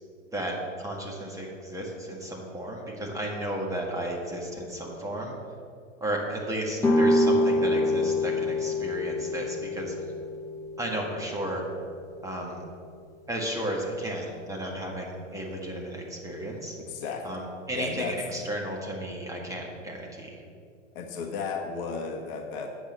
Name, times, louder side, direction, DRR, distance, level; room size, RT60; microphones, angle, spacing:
voice 1, 0.3-5.3 6.0-9.9 10.8-11.6 12.2-12.6 13.3-16.8 17.2-20.4, right 1 dB, 10° right, -1 dB, 1.7 m, -33 dB
sound 1, 6.8-12.6, left 1 dB, 10° left, 1.6 m, -27 dB
voice 2, 16.9-17.4 17.7-18.2 20.9-22.7, left 5 dB, 45° left, 3 dB, 1.3 m, -34 dB
8.6 x 6.3 x 7.3 m, 2.3 s
hypercardioid pair, 105°, 38 cm